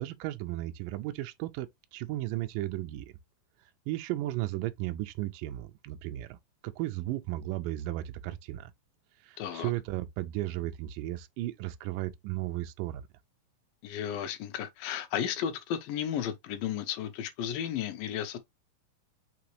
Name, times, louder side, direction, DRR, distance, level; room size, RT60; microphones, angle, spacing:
voice 1, 0.0-3.1 3.9-6.4 6.6-8.7 9.2-13.1, right 15 dB, 80° right, 2.1 m, -35 dB
voice 2, 9.4-9.7 13.8-18.4, left 9 dB, 85° left, 2.4 m, -34 dB
6.0 x 2.8 x 3.0 m
omnidirectional pair, 4.0 m